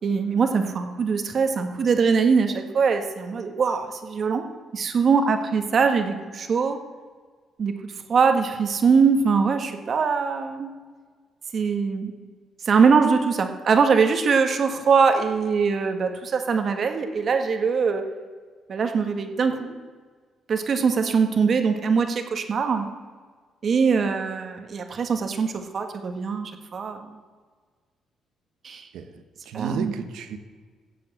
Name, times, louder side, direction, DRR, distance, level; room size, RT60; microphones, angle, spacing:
voice 1, 0.0-4.4 4.7-6.8 7.6-10.7 11.5-12.1 12.7-18.0 18.7-19.8 20.5-22.8 23.6-27.1 28.6-28.8 29.5-29.9, right 5 dB, 50° right, 6 dB, 1.7 m, -22 dB
voice 2, 28.9-30.4, right 6 dB, 85° right, 8 dB, 1.3 m, -33 dB
15.0 x 7.7 x 7.9 m, 1.5 s
cardioid pair, 90°, 0 cm